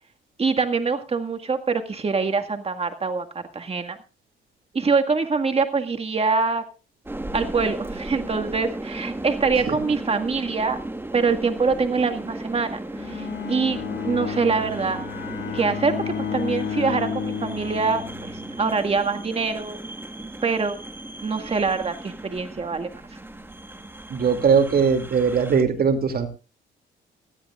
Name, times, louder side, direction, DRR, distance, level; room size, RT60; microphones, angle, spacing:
voice 1, 0.4-4.0 4.7-6.6 7.3-10.8 11.1-13.8 14.0-15.0 15.5-19.8 20.4-20.8 21.2-22.9, right 4 dB, 30° right, 6 dB, 1.9 m, -24 dB
sound 1, 7.1-25.6, right 2 dB, 10° right, 1.3 m, -35 dB
Bowed string instrument, 12.9-18.7, left 8 dB, 60° left, 1.8 m, -32 dB
voice 2, 24.1-26.3, right 6 dB, 50° right, 6 dB, 2.6 m, -20 dB
19.0 x 13.5 x 2.5 m, 0.31 s
cardioid pair, 90°, 20 cm